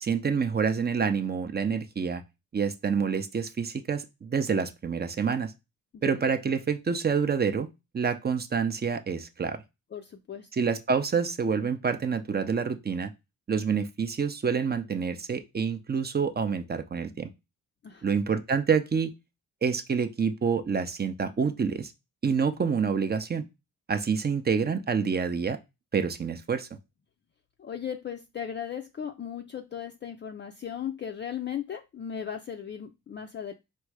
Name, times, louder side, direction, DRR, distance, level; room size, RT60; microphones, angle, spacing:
voice 1, 0.0-2.2 2.5-5.5 6.0-7.7 7.9-9.6 10.5-13.1 13.5-17.3 18.0-19.1 19.6-21.9 22.2-23.5 23.9-25.6 25.9-26.7, right 6 dB, 30° right, 0.5 m, -27 dB
voice 2, 9.9-10.5 17.8-18.1 27.6-33.5, left 8 dB, 35° left, 0.4 m, -37 dB
4.5 x 2.1 x 4.6 m
cardioid pair, 90°, 35 cm